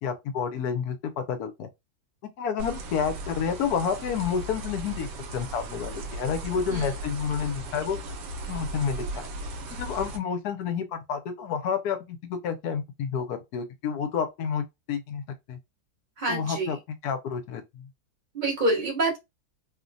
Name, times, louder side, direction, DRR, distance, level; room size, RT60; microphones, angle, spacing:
voice 1, 0.0-1.7 2.2-8.0 8.5-9.3 9.8-15.2 15.5-15.6 16.3-17.9, left 7 dB, 75° left, 1.1 m, -30 dB
sound 1, 2.6-10.2, right 1 dB, 85° right, 1.3 m, -37 dB
voice 2, 16.2-16.8 18.3-19.2, right 2 dB, 35° right, 0.9 m, -27 dB
3.0 x 2.1 x 2.6 m
omnidirectional pair, 1.8 m